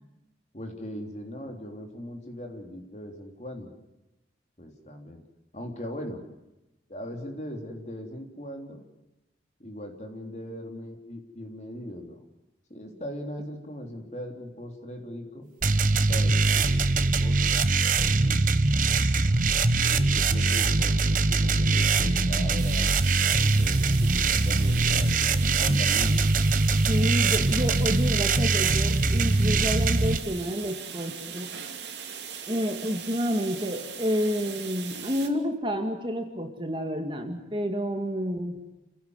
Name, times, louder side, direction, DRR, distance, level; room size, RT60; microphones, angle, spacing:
voice 1, 0.5-3.7 4.6-5.2 5.5-6.2 6.9-8.8 9.6-12.2 12.7-15.5 16.1-17.7 17.9-18.6 19.8-23.0 23.4-26.2, equal, 40° left, 3 dB, 3.5 m, -39 dB
sound 1, 15.6-30.2, right 3 dB, 45° right, 1.1 m, -22 dB
sound 2, 22.6-35.3, right 7 dB, 75° right, 2.8 m, -40 dB
voice 2, 26.9-31.5 32.5-38.6, equal, 25° right, 5 dB, 2.2 m, -29 dB
28.0 x 16.5 x 8.1 m, 0.96 s
head